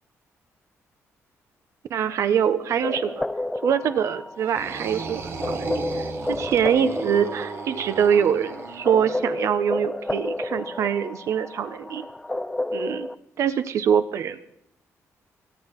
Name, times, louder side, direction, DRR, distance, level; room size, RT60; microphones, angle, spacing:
voice 1, 1.9-3.2 3.6-12.1 12.7-13.1 13.4-14.4, right 8 dB, 60° right, 12 dB, 1.2 m, -24 dB
sound 1, 2.8-13.1, left 1 dB, 5° left, 0.6 m, -31 dB
sound 2, 4.4-9.2, right 4 dB, 45° right, 1.4 m, -35 dB
29.5 x 10.0 x 3.8 m, 0.76 s
cardioid pair, 155°, 6 cm